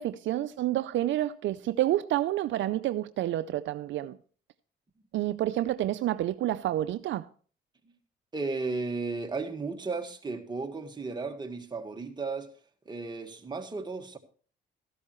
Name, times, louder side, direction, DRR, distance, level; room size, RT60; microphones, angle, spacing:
voice 1, 0.0-4.2 5.1-7.3, right 13 dB, 70° right, 0.5 m, -29 dB
voice 2, 8.3-12.5 12.8-14.2, right 3 dB, 20° right, 1.6 m, -34 dB
14.0 x 12.0 x 3.1 m
cardioid pair, 90°, 20 cm